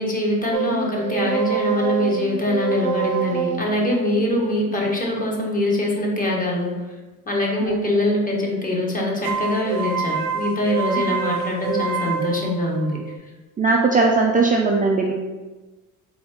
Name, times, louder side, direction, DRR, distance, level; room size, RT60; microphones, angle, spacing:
voice 1, 0.0-6.7 7.3-13.0, left 1 dB, 25° left, -2 dB, 1.2 m, -23 dB
sound 1, 0.5-5.9 9.2-13.2, right 7 dB, 65° right, 0.8 m, -27 dB
voice 2, 13.6-15.1, right 3 dB, 25° right, 0 dB, 0.4 m, -18 dB
3.9 x 2.7 x 3.5 m, 1.2 s
supercardioid pair, 70°, 36 cm